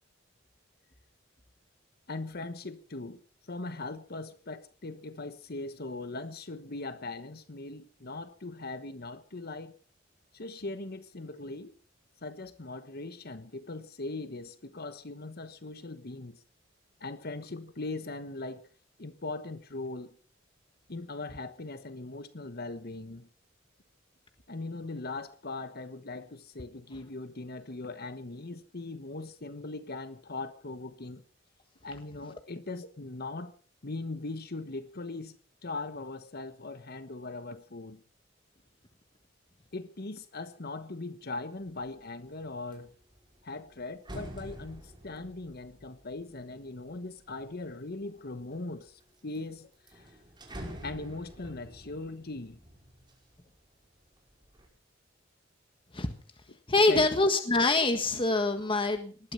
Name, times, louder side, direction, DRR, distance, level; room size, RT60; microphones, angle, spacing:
voice 1, 2.1-9.7 10.3-11.7 12.2-16.4 17.0-18.7 19.0-20.2 20.9-23.3 24.5-31.2 31.8-33.6 33.8-35.4 35.6-38.0 39.7-42.9 43.4-50.2 50.8-52.6 56.9-57.1 57.5-57.6 58.1-58.2, left 2 dB, 55° left, 1.2 m, -40 dB
sound 1, 41.6-42.0 42.4-47.7 48.3-49.0 49.3-49.4 49.7-53.6 54.0-54.7, equal, 25° right, 5.6 m, -47 dB
voice 2, 56.7-59.3, left 3 dB, 25° left, 1.5 m, -25 dB
19.5 x 12.5 x 5.6 m
head